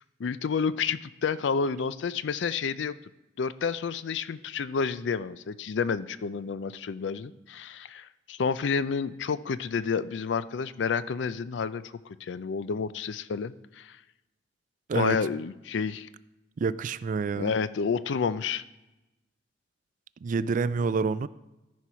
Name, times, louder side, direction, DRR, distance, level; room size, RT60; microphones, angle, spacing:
voice 1, 0.2-2.9 3.4-14.0 14.9-16.1 17.3-18.6, left 5 dB, 75° left, 16 dB, 0.4 m, -30 dB
voice 2, 16.6-17.6 20.2-21.3, right 4 dB, 45° right, 16 dB, 0.3 m, -27 dB
13.5 x 4.6 x 5.6 m, 1.0 s
head